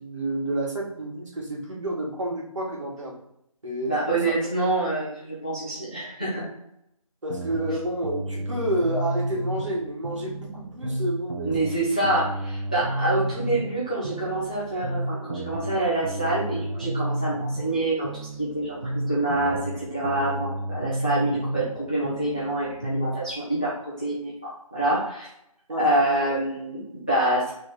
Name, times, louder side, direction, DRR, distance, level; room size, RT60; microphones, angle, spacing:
voice 1, 0.0-3.2 3.6-4.2 7.2-11.7 25.7-25.9, right 1 dB, 60° right, -2 dB, 1.5 m, -30 dB
voice 2, 3.9-6.5 11.4-25.3 25.8-27.5, right 1 dB, 15° left, -8 dB, 0.5 m, -26 dB
sound 1, 7.3-9.8 10.0-13.8 14.0-17.8 18.0-21.8 22.0-23.1, right 1 dB, 35° right, 0.7 m, -31 dB
3.5 x 3.2 x 4.0 m, 0.78 s
figure-of-eight pair, 175°, 18 cm